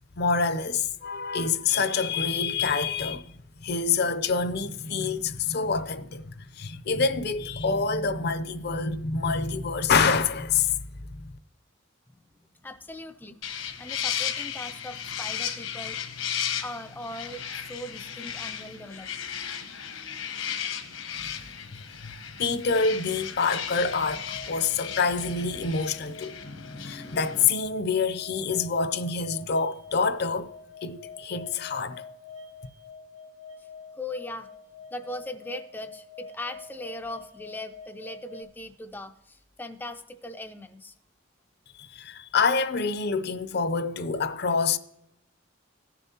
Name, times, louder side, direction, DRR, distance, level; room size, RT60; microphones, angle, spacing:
voice 1, 0.2-3.2 3.6-10.8 11.1-11.3 21.2-21.4 22.0-26.3 26.8-30.5 30.8-32.0 41.8-44.8, left 5 dB, 55° left, 0.6 m, -26 dB
voice 2, 12.5-16.0 16.6-19.1 33.6-34.5 34.9-40.9, left 1 dB, 10° left, 0.3 m, -39 dB
sound 1, 13.4-27.5, left 8 dB, 80° left, 1.1 m, -35 dB
sound 2, 23.7-38.4, left 5 dB, 75° right, 1.7 m, -46 dB
17.0 x 7.0 x 2.8 m
head